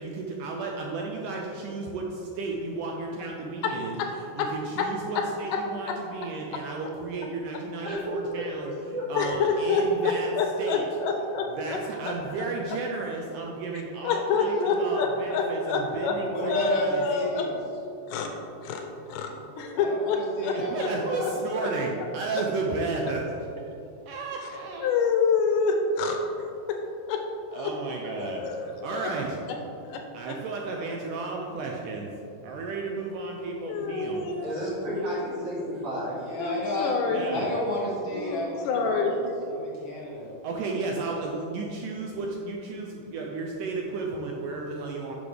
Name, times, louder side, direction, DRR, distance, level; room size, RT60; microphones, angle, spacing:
voice 1, 0.0-8.7 9.1-10.3 10.6-10.8 11.5-17.1 20.5-23.2 24.1-24.9 27.5-29.4 30.1-32.1 32.4-34.2 37.1-37.5 40.4-45.1, right 3 dB, 80° right, 0 dB, 1.9 m, -33 dB
voice 2, 7.8-9.1 34.4-36.2, equal, 55° right, -8 dB, 3.1 m, -32 dB
voice 3, 9.1-11.8 14.0-16.1 16.4-17.5 18.1-18.3 18.6-19.3 19.6-20.9 21.6-21.7 24.8-26.2 27.1-27.2 27.5-27.7 28.2-29.1 29.8-30.0 33.6-34.7 36.4-37.4 38.1-39.3, left 4 dB, 80° left, 3 dB, 1.9 m, -27 dB
voice 4, 16.3-17.6 19.7-21.4 36.2-36.9 37.3-40.3, left 1 dB, 55° left, -5 dB, 1.8 m, -32 dB
10.0 x 6.3 x 3.3 m, 2.7 s
omnidirectional pair, 4.4 m